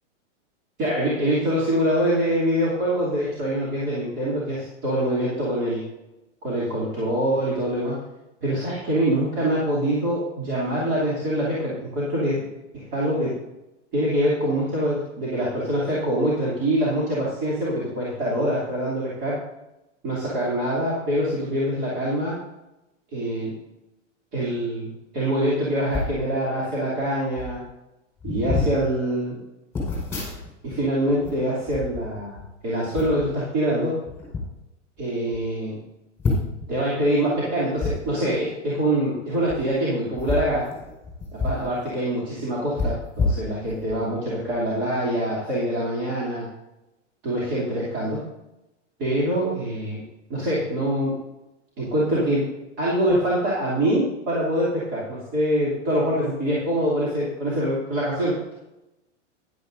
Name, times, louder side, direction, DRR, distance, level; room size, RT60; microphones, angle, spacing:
voice 1, 0.8-5.9 6.4-8.0 8.4-12.5 12.7-13.4 13.9-19.4 20.0-22.4 23.1-23.6 24.3-27.6 28.2-29.4 30.6-34.0 35.0-35.8 36.7-40.7 41.3-46.5 47.2-48.2 49.0-50.0 50.3-51.2 51.8-52.5 52.8-58.4, right 1 dB, 30° right, -7 dB, 3.0 m, -24 dB
sound 1, 25.9-26.2 27.0-27.1 27.3-27.6 28.2-28.8 29.7-30.8 31.1-32.5 32.9-33.3 34.1-34.4 35.0-35.1 35.3-35.4 36.2-36.7 37.8-37.9 39.4-39.6 40.1-41.7 42.0-42.1 42.8-44.0 44.5-44.6, left 3 dB, 5° left, 4.6 m, -28 dB
15.0 x 11.0 x 2.7 m, 0.97 s
supercardioid pair, 160°, 37 cm